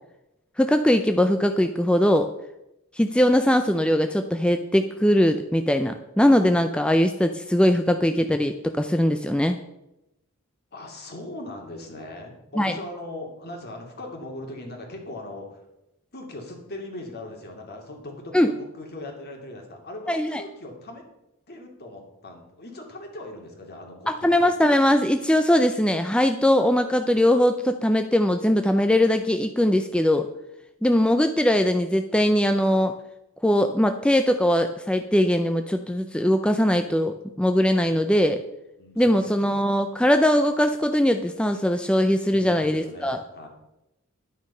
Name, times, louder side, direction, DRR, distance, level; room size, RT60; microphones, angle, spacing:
voice 1, 0.6-2.3 2.9-9.6 12.6-12.7 18.3-18.5 20.1-20.4 24.1-30.3 30.8-32.9 33.4-38.4 39.0-43.2, left 1 dB, 5° left, 6 dB, 0.5 m, -21 dB
voice 2, 10.7-15.6 16.1-21.0 21.5-24.5 38.8-39.7 42.3-43.5, left 1 dB, 50° left, 2 dB, 2.6 m, -39 dB
11.0 x 9.4 x 5.6 m, 0.90 s
head